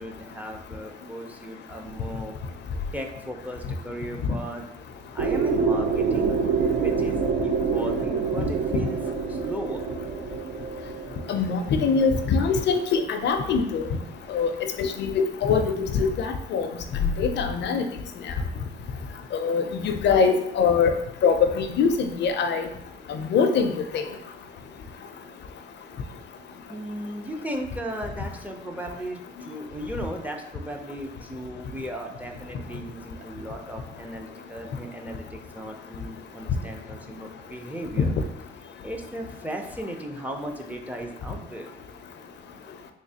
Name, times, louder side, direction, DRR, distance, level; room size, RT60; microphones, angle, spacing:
voice 1, 0.0-2.4 2.9-4.6 5.1-9.0 9.3-9.9 26.7-38.1 38.8-41.8, equal, 10° right, 3 dB, 0.4 m, -36 dB
sound 1, 5.2-13.0, right 5 dB, 70° right, 0.5 m, -26 dB
voice 2, 11.3-13.9 14.3-16.7 17.0-17.8 19.3-20.9 21.2-22.6 23.1-24.0, left 5 dB, 60° left, 7 dB, 0.4 m, -23 dB
3.5 x 3.1 x 2.7 m, 0.82 s
cardioid pair, 90°, 20 cm